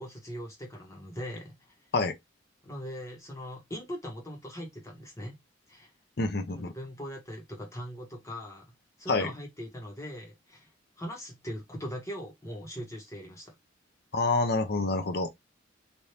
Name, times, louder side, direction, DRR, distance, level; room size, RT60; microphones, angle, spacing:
voice 1, 0.0-1.5 2.6-5.3 5.7-5.9 6.5-8.6 9.0-10.7 11.0-13.5, equal, 15° left, 1.3 m, -40 dB
voice 2, 6.2-6.7 9.1-9.3 14.1-15.3, left 3 dB, 55° left, 0.7 m, -27 dB
3.3 x 2.7 x 2.8 m
head